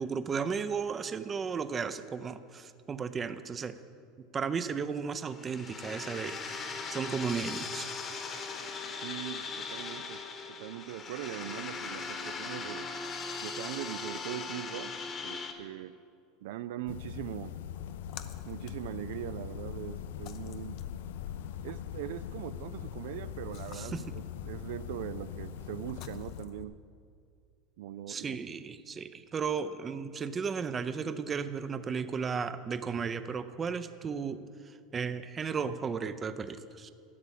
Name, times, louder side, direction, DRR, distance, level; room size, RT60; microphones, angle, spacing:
voice 1, 0.0-3.8 4.3-7.9 23.7-24.1 28.1-36.9, right 6 dB, 20° right, 12 dB, 0.5 m, -35 dB
sound 1, 5.2-15.5, left 4 dB, 30° left, 1.1 m, -39 dB
voice 2, 9.0-10.2 10.5-12.9 13.4-16.0 16.4-17.5 18.5-21.0 21.6-26.8 27.8-28.4, right 13 dB, 75° right, 14 dB, 0.3 m, -41 dB
sound 2, 16.9-26.5, left 10 dB, 90° left, 0.3 m, -42 dB
Splash splatter, 17.7-26.6, left 8 dB, 50° left, 0.6 m, -47 dB
12.5 x 6.8 x 8.2 m, 2.4 s
supercardioid pair, 140°, 0 cm